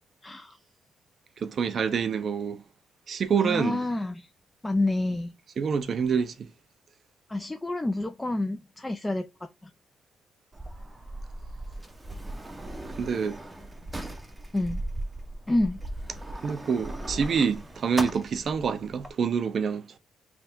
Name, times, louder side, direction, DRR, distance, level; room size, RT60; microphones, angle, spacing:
voice 1, 0.2-0.6 3.4-4.3 4.6-5.3 7.3-9.3 9.6-9.7 14.5-14.8 15.5-15.8, left 2 dB, 15° left, 0.5 m, -28 dB
voice 2, 1.4-2.6 3.1-3.8 5.6-6.5 13.0-13.4 16.4-20.0, right 6 dB, 50° right, 0.6 m, -27 dB
Sliding door, 10.5-19.1, right 1 dB, 15° right, 0.8 m, -38 dB
3.4 x 2.4 x 4.3 m
cardioid pair, 90°, 0 cm